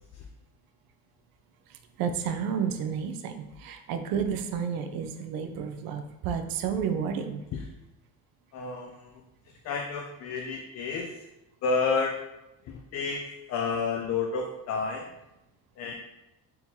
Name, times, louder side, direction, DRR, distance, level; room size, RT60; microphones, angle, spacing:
voice 1, 1.7-7.4, right 7 dB, 65° right, 7 dB, 0.5 m, -31 dB
voice 2, 8.5-9.2 9.6-11.2 11.6-12.2 12.6-15.1 15.8-15.9, left 4 dB, 45° left, 2 dB, 0.4 m, -30 dB
4.4 x 3.6 x 2.7 m, 0.96 s
cardioid pair, 150°, 38 cm